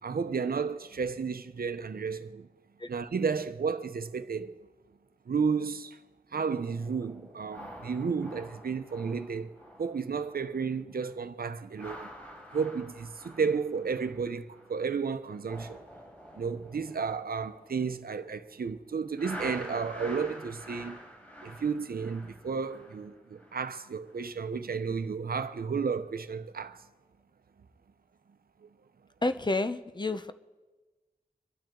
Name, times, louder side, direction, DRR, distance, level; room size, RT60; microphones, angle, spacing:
voice 1, 0.0-2.5 2.9-4.5 5.3-6.0 6.3-9.5 9.8-12.1 12.5-15.8 16.3-21.0 21.4-26.8 28.6-28.7, right 5 dB, 80° right, 0.8 m, -32 dB
sound 1, 6.5-10.7 10.9-11.2 11.6-14.9 15.2-18.5 19.2-23.7 24.1-24.3, equal, 10° left, 4.1 m, -47 dB
voice 2, 29.2-30.3, left 2 dB, 30° left, 0.8 m, -29 dB
25.0 x 12.0 x 3.9 m
wide cardioid pair, 65°, 15 cm